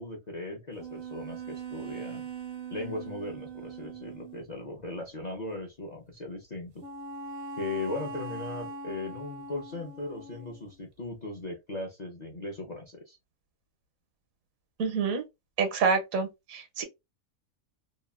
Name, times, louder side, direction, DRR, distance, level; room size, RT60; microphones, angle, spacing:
voice 1, 0.0-2.2 2.7-6.8 7.6-13.2, left 2 dB, 50° left, 0.5 m, -38 dB
sound 1, 0.8-4.4 6.8-10.7, right 4 dB, 55° right, 0.7 m, -41 dB
voice 2, 14.8-15.2 15.6-16.8, right 5 dB, 75° right, 1.1 m, -27 dB
2.9 x 2.4 x 2.3 m
omnidirectional pair, 1.5 m